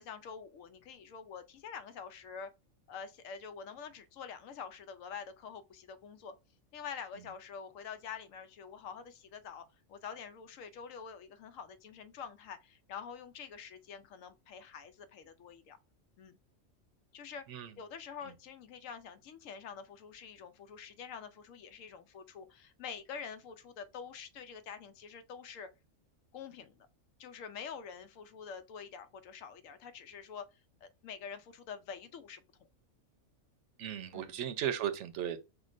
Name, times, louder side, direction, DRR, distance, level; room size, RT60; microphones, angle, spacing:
voice 1, 0.0-2.5 2.9-6.3 6.7-15.8 16.2-16.4 17.1-17.5 17.8-25.7 26.3-26.9 27.2-30.5 30.8-32.4 34.1-34.4, left 6 dB, 80° left, 1.0 m, -46 dB
voice 2, 33.8-35.4, right 10 dB, 70° right, 0.9 m, -36 dB
5.8 x 2.2 x 2.4 m
omnidirectional pair, 1.3 m